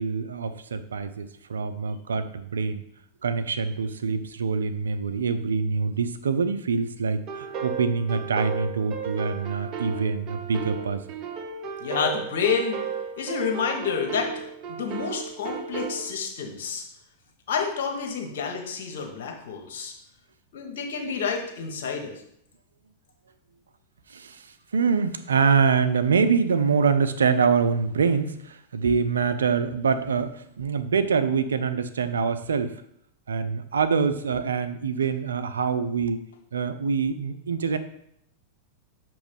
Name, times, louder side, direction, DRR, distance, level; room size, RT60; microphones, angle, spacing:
voice 1, 0.0-2.8 3.2-11.0 24.1-24.5 24.7-32.7 33.3-36.2 36.5-37.8, right 5 dB, 80° right, 11 dB, 0.4 m, -25 dB
sound 1, 7.3-16.0, right 6 dB, 40° right, 0.7 m, -34 dB
voice 2, 11.8-12.8 13.2-14.4 14.7-16.8 17.5-19.9 20.5-22.1, left 6 dB, 65° left, 2 dB, 1.3 m, -29 dB
6.0 x 3.0 x 5.2 m, 0.73 s
hypercardioid pair, 100°, 0 cm